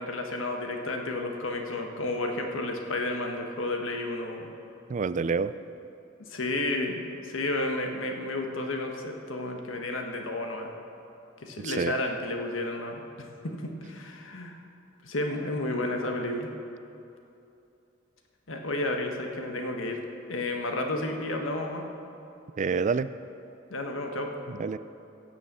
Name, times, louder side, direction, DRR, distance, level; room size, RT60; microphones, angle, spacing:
voice 1, 0.0-4.5 6.3-10.7 11.4-14.6 15.0-16.5 18.5-20.0 20.3-21.8 23.7-24.3, left 2 dB, 85° left, 3 dB, 1.5 m, -32 dB
voice 2, 4.9-5.5 11.6-11.9 22.6-23.1 24.5-24.8, right 5 dB, 40° right, 15 dB, 0.3 m, -27 dB
16.5 x 6.5 x 7.6 m, 2.8 s
head